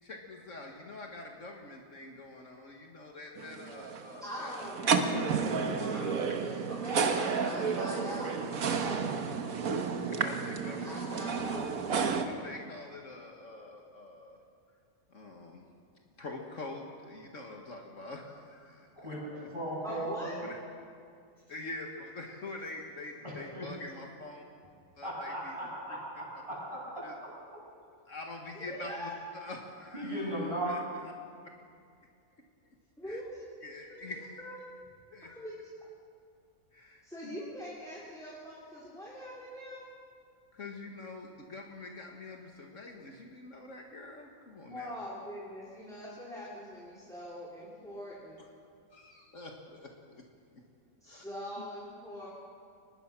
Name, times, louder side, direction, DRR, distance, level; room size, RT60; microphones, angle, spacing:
voice 1, 0.0-4.5 9.6-11.1 12.3-14.4 15.1-15.6 16.2-19.2 19.9-20.0 20.4-20.6 21.5-24.4 25.0-25.7 26.1-26.2 27.0-27.2 28.1-29.1 29.4-31.1 31.4-31.5 33.1-33.2 33.6-34.4 35.1-35.3 36.7-37.3 40.5-45.0 48.4-48.5 48.9-50.2 51.1-51.3, left 2 dB, 55° left, 1 dB, 2.0 m, -45 dB
sound 1, 3.4-12.2, right 5 dB, 70° right, 1.6 m, -31 dB
voice 2, 4.2-8.4 8.6-9.1 10.8-11.8 19.8-20.4 28.5-29.1 33.0-33.4 33.7-34.1 34.4-34.5 35.2-35.6 37.0-39.8 44.7-48.4 51.0-52.3, left 1 dB, ahead, -6 dB, 3.3 m, -43 dB
voice 3, 19.5-20.3 23.2-23.6 25.0-27.1 29.9-30.7, right 1 dB, 20° right, -6 dB, 8.0 m, -37 dB
24.0 x 20.5 x 6.1 m, 2.3 s
omnidirectional pair, 1.6 m